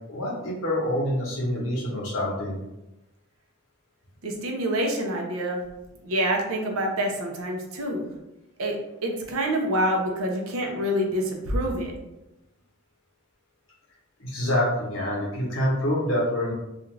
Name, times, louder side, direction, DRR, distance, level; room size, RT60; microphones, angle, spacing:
voice 1, 0.1-2.6 14.2-16.5, left 1 dB, 65° left, -4 dB, 0.9 m, -26 dB
voice 2, 4.2-5.6 6.0-8.1 8.6-12.0, right 1 dB, 80° right, 1 dB, 0.6 m, -27 dB
2.4 x 2.4 x 3.1 m, 0.95 s
head